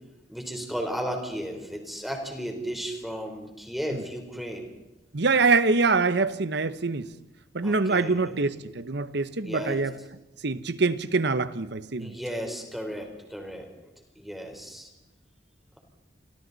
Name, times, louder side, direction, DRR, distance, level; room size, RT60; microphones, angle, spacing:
voice 1, 0.3-4.7 7.6-8.4 9.4-9.8 12.0-13.7 14.2-14.9, equal, ahead, 3.9 m, -34 dB
voice 2, 5.1-7.1 7.5-9.9 10.4-12.2, right 4 dB, 65° right, 1.0 m, -24 dB
29.0 x 24.0 x 4.1 m
head